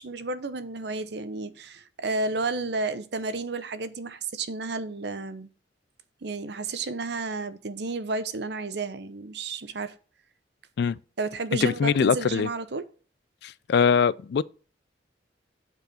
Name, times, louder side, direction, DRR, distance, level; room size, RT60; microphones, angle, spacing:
voice 1, 0.0-5.5 6.2-10.0 11.2-12.9, right 3 dB, 65° right, 0.8 m, -32 dB
voice 2, 11.6-12.5 13.4-14.4, left 6 dB, 65° left, 0.3 m, -22 dB
7.9 x 4.8 x 4.9 m
head